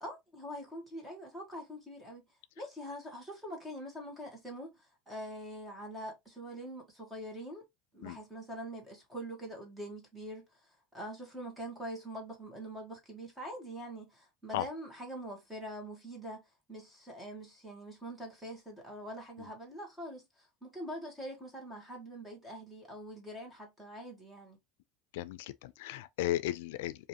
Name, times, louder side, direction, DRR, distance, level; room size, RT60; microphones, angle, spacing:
voice 1, 0.0-2.2 2.6-7.7 7.9-16.4 16.7-24.6, equal, 5° right, 1.4 m, -44 dB
voice 2, 25.1-27.1, left 14 dB, 90° left, 0.4 m, -35 dB
5.0 x 2.6 x 2.9 m
cardioid pair, 170°, 0 cm